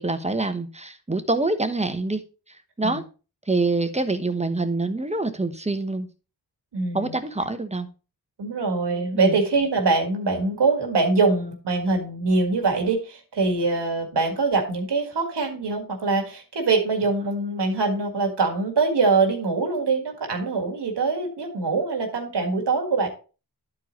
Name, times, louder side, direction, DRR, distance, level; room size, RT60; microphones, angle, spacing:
voice 1, 0.0-2.2 2.8-3.0 3.5-6.1 6.9-7.9 9.1-9.4, right 2 dB, 15° right, 9 dB, 1.1 m, -25 dB
voice 2, 6.7-7.2 8.4-23.1, right 3 dB, 85° right, 4 dB, 1.8 m, -23 dB
12.0 x 4.7 x 3.0 m, 0.34 s
cardioid pair, 55°, 40 cm